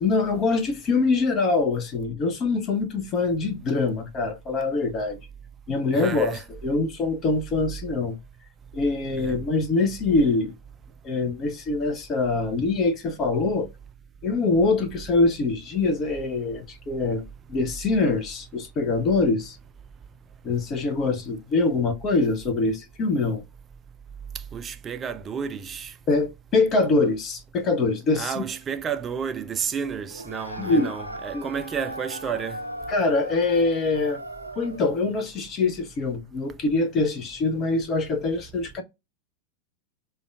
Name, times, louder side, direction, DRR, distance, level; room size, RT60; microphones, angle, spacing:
voice 1, 0.0-5.2 5.7-8.2 8.7-10.5 11.0-13.7 14.2-19.6 20.4-23.4 26.1-28.4 30.6-30.9 31.3-31.5 32.9-34.2 34.6-38.8, left 3 dB, 30° left, 0.6 m, -24 dB
voice 2, 5.9-6.4 9.2-9.4 24.5-25.9 28.1-32.6, right 7 dB, 25° right, 0.4 m, -31 dB
sound 1, 30.1-34.9, equal, 90° right, 0.4 m, -37 dB
4.9 x 2.2 x 2.4 m
figure-of-eight pair, 90°, 0 cm